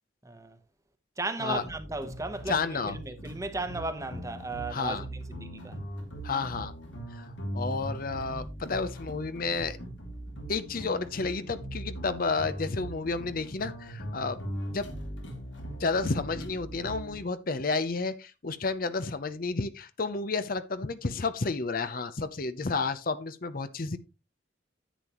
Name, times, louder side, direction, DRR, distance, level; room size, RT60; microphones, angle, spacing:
voice 1, 0.2-0.6 1.2-5.8, right 2 dB, 15° right, 1.0 m, -36 dB
sound 1, 1.5-17.2, right 1 dB, 80° left, 2.6 m, -40 dB
voice 2, 2.5-3.0 4.7-5.0 6.2-6.7 7.1-9.8 10.5-14.4 14.7-14.9 15.8-24.0, left 4 dB, 50° left, 0.7 m, -31 dB
10.0 x 8.7 x 3.0 m
head